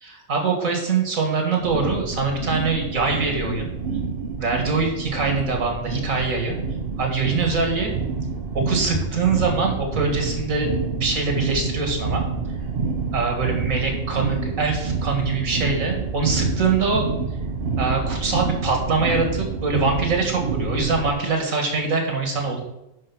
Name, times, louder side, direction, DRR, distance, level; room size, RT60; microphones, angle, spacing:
voice 1, 0.0-3.7 4.3-6.6 7.0-7.9 8.5-10.7 11.0-12.2 13.1-17.1 17.8-22.6, right 4 dB, 65° right, 2 dB, 2.2 m, -23 dB
sound 1, 1.6-21.1, right 4 dB, 45° right, 1.0 m, -27 dB
10.5 x 4.6 x 6.0 m, 0.88 s
omnidirectional pair, 1.5 m